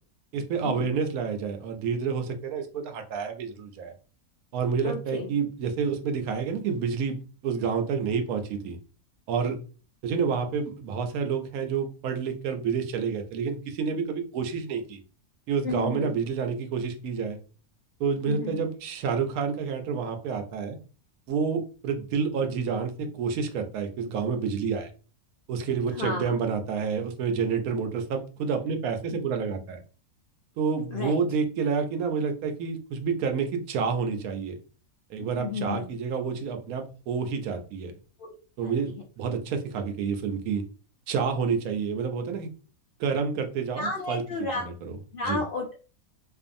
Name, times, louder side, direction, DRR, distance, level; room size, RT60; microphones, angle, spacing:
voice 1, 0.3-3.9 4.5-8.8 9.3-9.6 10.0-15.0 15.5-17.4 18.0-20.8 21.3-24.9 25.5-29.8 30.6-34.6 35.1-37.9 38.6-40.6 41.1-42.5 43.0-45.0 45.2-45.4, right 6 dB, 75° right, 5 dB, 1.0 m, -29 dB
voice 2, 4.8-5.3 15.6-16.1 18.2-18.6 26.0-26.3 30.9-31.2 35.4-35.9 38.2-38.3 38.6-39.0 43.8-44.6 45.1-45.7, left 3 dB, 75° left, -1 dB, 0.5 m, -32 dB
2.5 x 2.4 x 2.5 m, 0.37 s
omnidirectional pair, 1.6 m